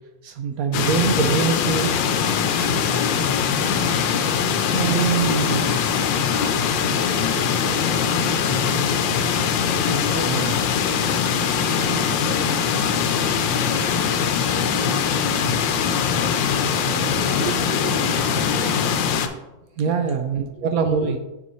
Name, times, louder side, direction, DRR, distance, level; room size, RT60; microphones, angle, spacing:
voice 1, 0.2-2.0 4.6-5.6 10.3-10.5 16.8-17.1 19.8-21.2, right 6 dB, 90° right, 6 dB, 0.7 m, -24 dB
sound 1, 0.7-19.3, left 7 dB, 75° left, 1.3 m, -22 dB
voice 2, 2.7-4.0 4.7-5.4 6.8-11.2 11.5-13.9 14.2-15.7 17.1-19.0 20.0-20.2 20.5-21.1, equal, 5° left, -5 dB, 2.4 m, -35 dB
6.9 x 6.3 x 3.0 m, 1.0 s
omnidirectional pair, 2.1 m